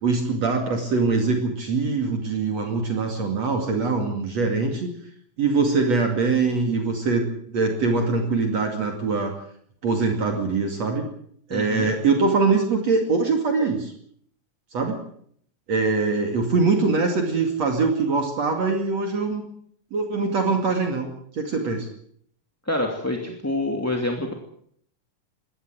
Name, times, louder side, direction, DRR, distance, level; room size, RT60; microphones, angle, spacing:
voice 1, 0.0-4.9 5.4-9.3 9.8-11.1 11.5-13.9 14.7-15.0 15.7-19.4 19.9-21.9, right 4 dB, 50° right, 4 dB, 3.4 m, -23 dB
voice 2, 11.5-11.9 22.7-24.3, left 1 dB, 5° left, 2 dB, 1.9 m, -26 dB
21.0 x 17.5 x 7.7 m, 0.65 s
omnidirectional pair, 3.9 m